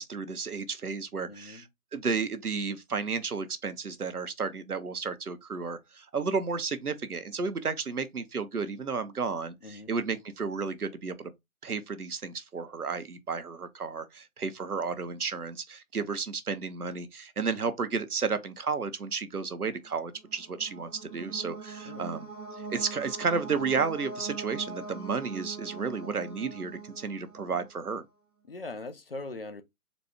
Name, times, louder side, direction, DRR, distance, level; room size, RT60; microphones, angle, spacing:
voice 1, 0.0-11.3 11.6-22.3 22.7-28.0, right 5 dB, 80° right, 0.9 m, -32 dB
voice 2, 1.3-1.7 9.6-9.9 21.8-22.2 23.5-23.8 28.4-29.6, left 2 dB, 40° left, 0.6 m, -41 dB
sound 1, 20.1-27.9, right 4 dB, 10° right, 0.6 m, -42 dB
4.1 x 2.3 x 4.2 m
figure-of-eight pair, 140°, 44 cm